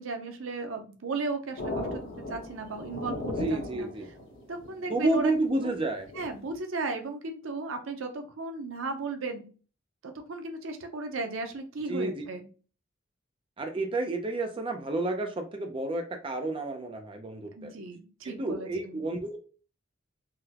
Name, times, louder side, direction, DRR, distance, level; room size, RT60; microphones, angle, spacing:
voice 1, 0.0-3.9 4.5-5.3 6.1-9.5 10.0-12.5 17.5-19.0, right 3 dB, 80° right, 6 dB, 0.6 m, -35 dB
sound 1, 1.6-6.6, left 1 dB, 75° left, 1.0 m, -37 dB
voice 2, 3.4-4.1 4.9-6.1 11.9-12.3 13.6-17.7 18.2-19.4, right 2 dB, 25° right, 4 dB, 0.5 m, -30 dB
3.8 x 2.1 x 2.8 m, 0.37 s
head